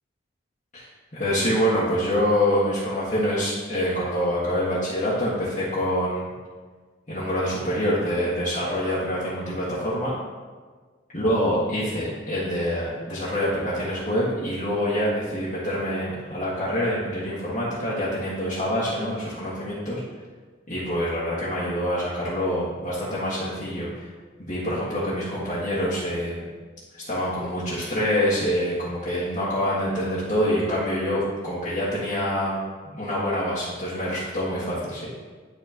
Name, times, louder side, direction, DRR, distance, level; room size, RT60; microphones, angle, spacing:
voice 1, 1.1-6.3 7.1-10.1 11.1-20.0 20.7-23.9 24.4-26.4 26.9-32.6 32.8-35.1, equal, 40° left, -11 dB, 1.6 m, -26 dB
11.5 x 4.4 x 2.9 m, 1.5 s
head